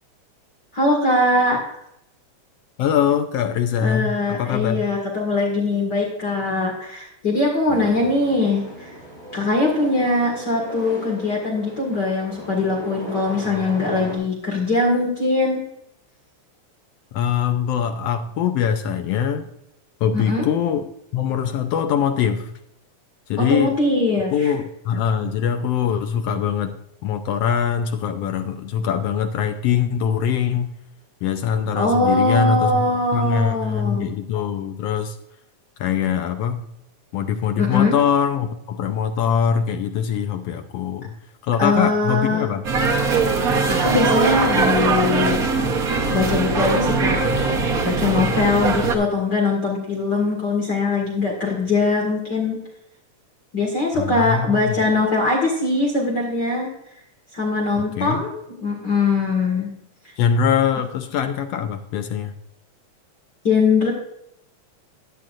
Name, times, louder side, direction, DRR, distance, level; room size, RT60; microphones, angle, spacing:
voice 1, 0.7-1.6 3.8-8.9 9.3-15.6 20.1-20.4 23.4-24.5 31.8-34.1 37.6-37.9 41.6-42.4 43.7-45.4 46.1-47.2 47.8-52.6 53.5-56.7 57.3-59.7 63.4-63.9, left 3 dB, 40° left, -1 dB, 2.2 m, -21 dB
voice 2, 2.8-4.8 7.7-7.8 17.1-19.5 20.0-20.9 21.1-22.5 23.3-23.8 24.3-26.7 27.0-30.7 31.2-32.8 33.1-35.2 35.8-36.6 37.1-41.1 41.4-42.6 53.9-54.8 57.8-58.2 60.2-62.3, left 8 dB, 75° left, 7 dB, 1.5 m, -22 dB
sound 1, 7.7-14.2, equal, 10° left, 4.2 m, -37 dB
sound 2, 42.6-48.9, right 4 dB, 80° right, 0.8 m, -20 dB
14.0 x 10.0 x 2.5 m, 0.79 s
omnidirectional pair, 3.4 m